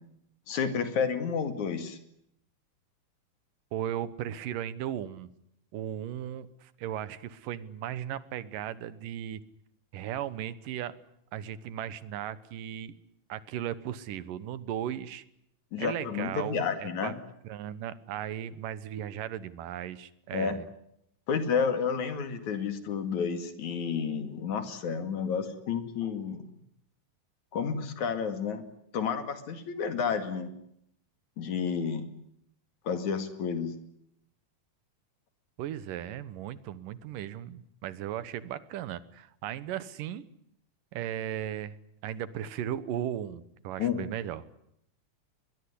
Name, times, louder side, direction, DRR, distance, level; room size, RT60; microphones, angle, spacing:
voice 1, 0.5-2.0 15.7-17.2 20.3-20.6 21.3-26.4 27.5-28.6 28.9-30.5 31.4-32.1 32.9-33.8 43.8-44.1, left 6 dB, 65° left, 9 dB, 3.5 m, -30 dB
voice 2, 3.7-5.3 5.7-9.4 9.9-11.0 11.3-12.9 13.3-15.2 15.8-17.1 17.4-20.7 35.6-40.2 40.9-41.8 42.0-44.5, right 11 dB, 85° right, 16 dB, 2.8 m, -36 dB
22.0 x 21.5 x 9.9 m, 0.73 s
omnidirectional pair, 3.7 m